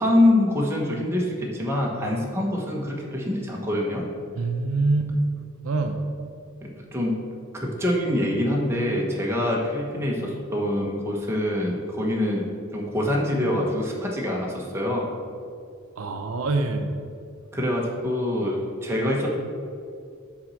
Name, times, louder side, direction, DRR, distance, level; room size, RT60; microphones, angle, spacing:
voice 1, 0.0-4.0 6.6-7.2 7.5-12.5 12.7-15.1 17.5-19.3, left 1 dB, 10° right, -2 dB, 1.1 m, -25 dB
voice 2, 4.4-5.2 5.6-6.0 16.0-17.0, right 3 dB, 75° right, 5 dB, 0.6 m, -25 dB
6.0 x 4.2 x 6.4 m, 2.3 s
head